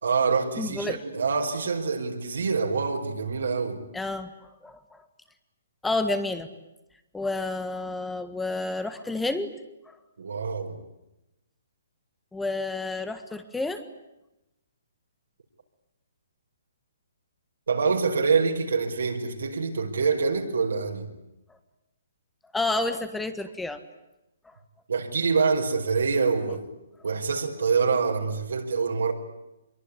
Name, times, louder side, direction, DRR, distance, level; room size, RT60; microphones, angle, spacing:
voice 1, 0.0-3.8 10.2-10.8 17.7-21.1 24.9-26.6 27.0-29.1, right 5 dB, 80° right, 2 dB, 5.2 m, -25 dB
voice 2, 0.6-1.0 3.9-4.3 4.6-5.0 5.8-6.5 7.1-9.5 9.8-10.0 12.3-13.8 21.5-21.6 22.5-23.8 24.4-24.6, left 2 dB, 5° left, 10 dB, 1.7 m, -30 dB
24.0 x 23.0 x 10.0 m, 0.92 s
hypercardioid pair, 150°, 0 cm